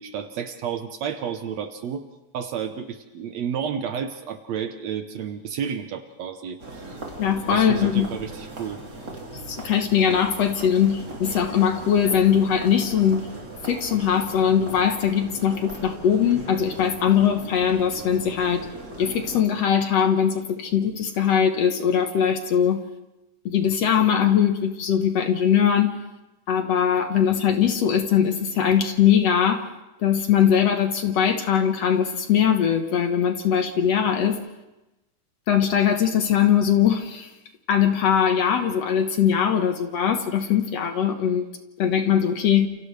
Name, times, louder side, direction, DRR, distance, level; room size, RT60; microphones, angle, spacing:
voice 1, 0.0-2.1 2.3-7.0 7.5-8.8, right 8 dB, 65° right, 8 dB, 1.9 m, -31 dB
sound 1, 6.6-19.5, right 2 dB, 30° right, 3.7 m, -38 dB
voice 2, 7.2-8.1 9.5-13.3 13.6-18.7 19.0-22.8 23.5-26.0 26.5-29.7 30.0-34.4 35.5-37.3 37.7-41.5 41.8-42.7, left 8 dB, 60° left, 6 dB, 2.1 m, -21 dB
29.5 x 28.5 x 3.3 m, 1.0 s
omnidirectional pair, 3.7 m